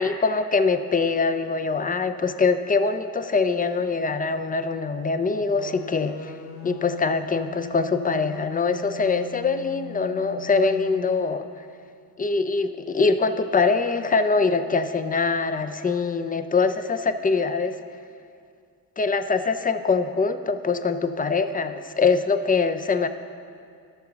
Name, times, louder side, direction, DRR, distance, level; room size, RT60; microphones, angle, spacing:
voice 1, 0.0-6.4 6.6-11.5 12.2-17.7 19.0-23.1, left 4 dB, 20° left, 10 dB, 0.5 m, -23 dB
sound 1, 5.6-11.6, left 10 dB, 80° left, 0.8 m, -41 dB
11.0 x 6.8 x 4.0 m, 2.3 s
hypercardioid pair, 40°, 45 cm